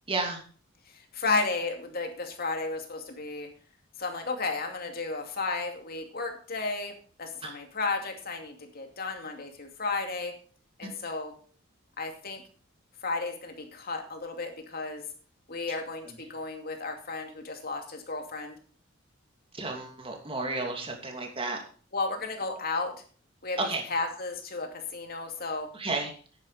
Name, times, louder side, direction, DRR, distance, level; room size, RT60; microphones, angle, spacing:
voice 1, 0.1-0.4 7.4-7.5 19.5-21.6 23.7-23.8 25.7-26.1, right 3 dB, 30° right, 2 dB, 2.7 m, -32 dB
voice 2, 0.9-3.5 4.0-6.9 7.2-10.3 10.8-11.3 12.0-12.4 13.0-15.0 15.5-18.6 21.9-23.0 23.4-23.6 23.9-25.7, left 3 dB, 50° left, 4 dB, 2.5 m, -33 dB
10.5 x 9.9 x 5.0 m, 0.42 s
head